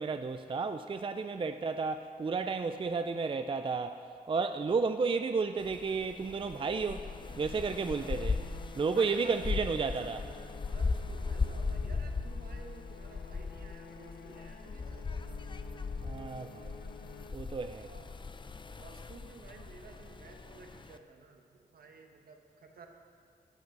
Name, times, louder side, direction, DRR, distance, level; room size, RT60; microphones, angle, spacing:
voice 1, 0.0-4.0 4.3-7.1 7.4-8.4 8.8-10.2 16.0-16.8 17.3-17.9, right 4 dB, 35° right, 8 dB, 0.4 m, -32 dB
sound 1, 5.6-21.0, left 4 dB, 30° left, 0.5 m, -38 dB
sound 2, 6.4-17.9, left 5 dB, 85° left, 0.6 m, -52 dB
voice 2, 7.9-8.4 9.0-15.4 17.7-18.2 18.8-22.9, right 4 dB, 70° right, 3 dB, 1.2 m, -53 dB
13.5 x 7.8 x 4.7 m, 2.2 s
cardioid pair, 60°, 16 cm